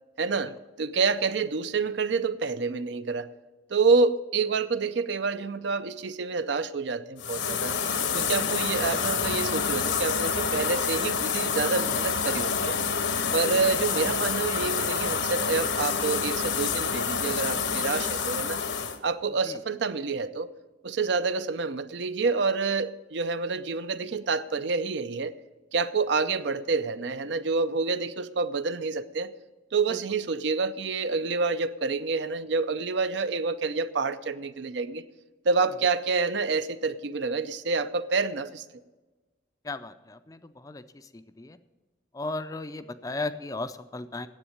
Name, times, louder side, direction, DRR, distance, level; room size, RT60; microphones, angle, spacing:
voice 1, 0.2-0.5 0.8-3.3 3.7-7.7 8.1-12.8 13.3-18.6 19.0-20.5 20.8-25.3 25.7-29.3 29.7-35.0 35.4-38.6, right 4 dB, 65° right, 0.5 m, -28 dB
sound 1, 7.2-19.0, left 6 dB, 75° left, 1.0 m, -28 dB
voice 2, 39.6-40.8 41.4-41.6 42.1-44.3, left 2 dB, 20° left, 0.4 m, -35 dB
9.9 x 7.9 x 8.6 m
head